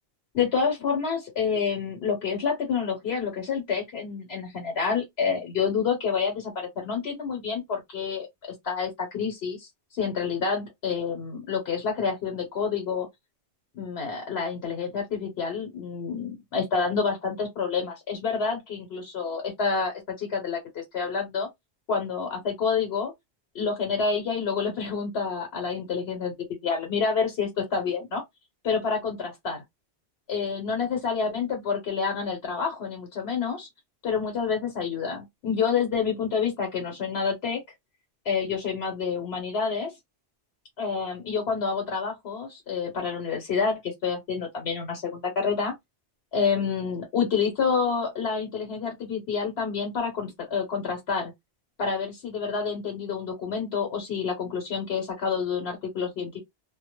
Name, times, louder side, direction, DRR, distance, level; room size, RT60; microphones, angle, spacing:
voice 1, 0.3-8.3 8.6-13.1 13.7-20.6 20.9-21.5 21.9-23.1 23.5-26.3 26.6-28.2 28.6-29.6 30.3-33.7 34.0-37.6 38.2-39.9 40.8-45.7 46.3-51.3 51.8-56.4, left 5 dB, 75° left, 1.0 m, -28 dB
2.1 x 2.0 x 2.8 m
omnidirectional pair, 1.1 m